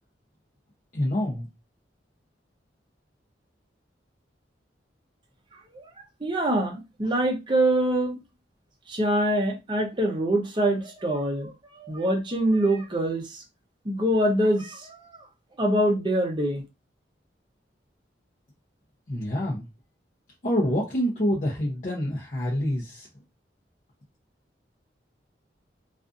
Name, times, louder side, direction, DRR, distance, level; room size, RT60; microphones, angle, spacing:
voice 1, 0.9-1.5 19.1-19.7 20.4-23.1, equal, 40° left, 0.6 m, -26 dB
voice 2, 6.2-8.2 8.9-11.5 11.8-13.4 13.9-15.2 15.6-16.6, right 1 dB, 25° right, 0.6 m, -24 dB
2.4 x 2.4 x 2.4 m
head